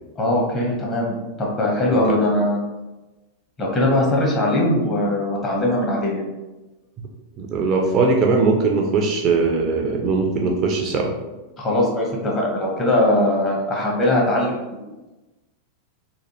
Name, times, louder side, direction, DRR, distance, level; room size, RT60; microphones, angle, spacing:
voice 1, 0.2-2.6 3.6-6.2 11.6-14.8, left 1 dB, 25° left, -3 dB, 0.9 m, -21 dB
voice 2, 7.4-11.1, right 4 dB, 35° right, 1 dB, 0.4 m, -20 dB
3.1 x 2.2 x 2.8 m, 1.1 s
figure-of-eight pair, 90°, 0 cm